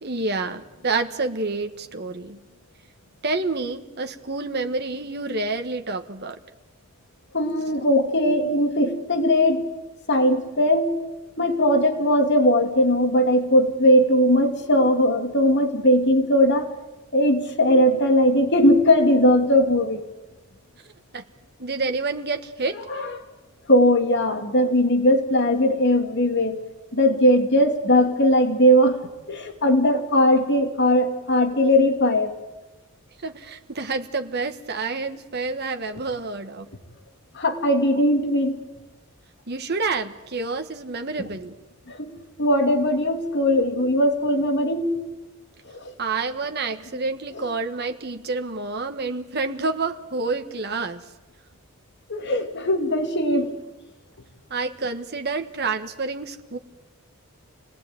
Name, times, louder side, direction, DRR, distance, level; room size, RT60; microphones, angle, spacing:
voice 1, 0.0-2.4 3.2-6.4 21.1-21.2 21.6-22.8 33.2-36.7 39.5-41.5 46.0-51.0 54.5-56.6, right 3 dB, 50° right, 6 dB, 1.5 m, -28 dB
voice 2, 7.3-9.7 10.1-11.0 11.4-16.7 17.1-20.0 22.9-23.2 23.7-26.6 26.9-29.0 29.3-32.3 37.3-38.6 41.2-41.3 41.9-42.1 42.4-44.9 52.1-53.5, equal, 50° left, 5 dB, 2.7 m, -19 dB
27.0 x 19.0 x 9.3 m, 1.1 s
head